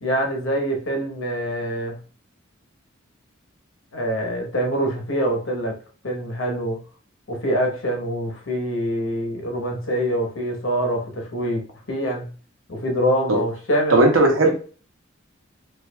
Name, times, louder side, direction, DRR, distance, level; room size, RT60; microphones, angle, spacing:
voice 1, 0.0-2.0 3.9-5.8 6.0-6.8 7.3-11.6 11.9-12.3 12.7-13.9 14.4-14.5, equal, 75° left, 2 dB, 1.0 m, -25 dB
voice 2, 13.9-14.5, right 2 dB, 90° right, 3 dB, 0.9 m, -16 dB
4.6 x 2.5 x 2.2 m, 0.39 s
head